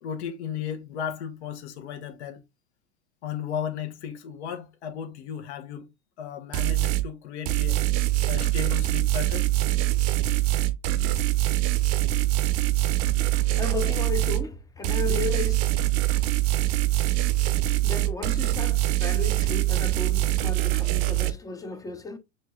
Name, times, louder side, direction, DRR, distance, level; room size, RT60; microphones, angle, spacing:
voice 1, 0.0-2.4 3.2-5.9 6.2-7.8 8.3-9.5, left 8 dB, 70° left, 1.1 m, -35 dB
sound 1, 6.5-7.1 7.5-14.5 14.8-21.3, right 15 dB, 40° right, 0.6 m, -24 dB
voice 2, 13.6-15.7 17.4-22.2, left 5 dB, 10° left, 0.5 m, -34 dB
6.6 x 3.2 x 2.3 m
hypercardioid pair, 110°, 35 cm